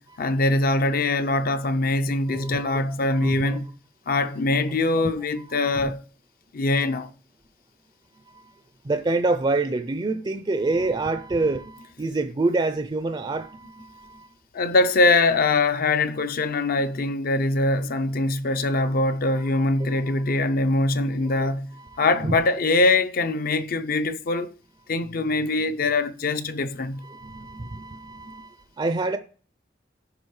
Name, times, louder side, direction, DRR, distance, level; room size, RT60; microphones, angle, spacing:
voice 1, 0.0-3.7 4.1-6.0 6.5-7.1 14.5-24.5 24.9-27.0, left 2 dB, 55° left, 0.5 m, -23 dB
voice 2, 2.3-2.8 3.2-3.6 5.7-5.9 8.3-8.4 8.8-14.3 19.9-20.0 21.4-21.5 21.9-22.3 27.0-29.2, right 3 dB, 25° right, 0.4 m, -27 dB
15.0 x 5.2 x 3.1 m
head